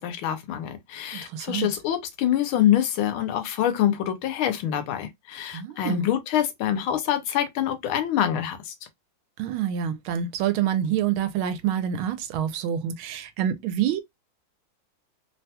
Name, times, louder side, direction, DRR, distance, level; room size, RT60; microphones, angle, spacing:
voice 1, 0.0-8.7, left 11 dB, 85° left, 1.6 m, -25 dB
voice 2, 1.1-1.7 5.5-6.1 9.4-14.0, right 9 dB, 90° right, 1.4 m, -27 dB
3.6 x 2.2 x 2.7 m
omnidirectional pair, 2.2 m